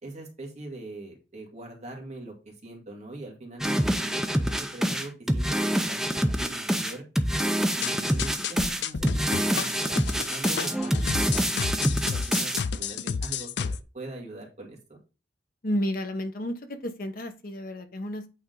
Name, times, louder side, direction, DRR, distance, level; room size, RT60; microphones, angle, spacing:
voice 1, 0.0-7.0 7.7-14.8, right 2 dB, 40° right, 0 dB, 2.1 m, -42 dB
sound 1, 3.6-12.6, equal, 5° right, 0.5 m, -26 dB
sound 2, 7.8-13.8, left 6 dB, 70° left, 0.4 m, -31 dB
voice 2, 15.6-18.3, equal, 50° left, 7 dB, 1.1 m, -31 dB
8.5 x 3.7 x 3.9 m, 0.31 s
head